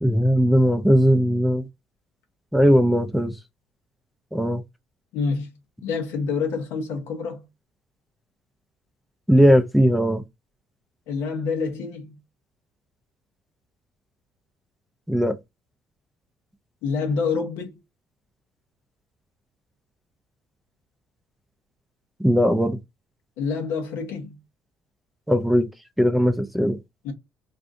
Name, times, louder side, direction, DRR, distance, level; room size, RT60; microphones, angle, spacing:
voice 1, 0.0-1.7 2.5-3.3 4.3-4.6 9.3-10.2 15.1-15.4 22.2-22.8 25.3-25.7 26.0-26.8, equal, ahead, 0.4 m, -18 dB
voice 2, 5.1-5.5 5.8-7.4 11.1-12.2 16.8-17.8 23.4-24.4 27.0-27.1, left 5 dB, 85° left, 0.9 m, -27 dB
2.5 x 2.5 x 3.5 m
cardioid pair, 105°, 4 cm